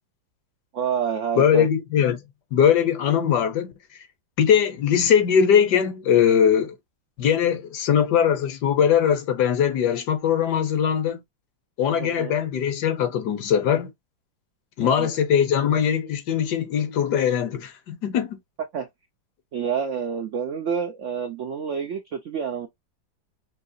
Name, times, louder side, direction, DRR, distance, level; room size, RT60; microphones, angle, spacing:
voice 1, 0.7-1.7 12.0-12.4 14.8-15.2 18.7-18.9 19.5-22.7, right 7 dB, 75° right, 0.7 m, -28 dB
voice 2, 1.4-2.2 2.5-3.7 4.4-6.7 7.2-11.2 11.8-13.9 14.8-18.4, left 8 dB, 65° left, 1.3 m, -21 dB
5.5 x 2.9 x 2.6 m
omnidirectional pair, 2.0 m